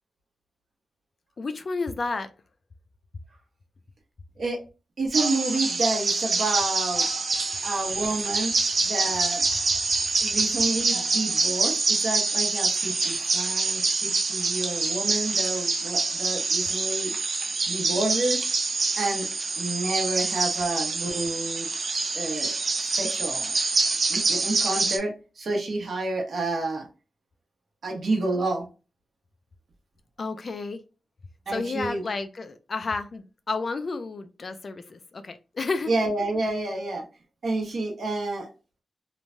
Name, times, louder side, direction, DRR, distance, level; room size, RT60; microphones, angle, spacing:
voice 1, 1.4-2.3 30.2-30.8 31.5-35.9, left 3 dB, 45° left, 0.3 m, -31 dB
voice 2, 5.0-7.1 7.6-8.5 8.8-9.4 10.2-17.1 17.7-18.4 19.0-19.3 19.6-21.7 22.1-22.5 22.8-23.5 24.1-26.9 27.8-28.6 31.5-32.0 35.8-37.0 37.4-38.5, right 2 dB, 70° right, 0.9 m, -29 dB
sound 1, 5.1-25.0, right 3 dB, 50° right, 0.5 m, -26 dB
3.1 x 2.2 x 2.5 m
wide cardioid pair, 150°, 0 cm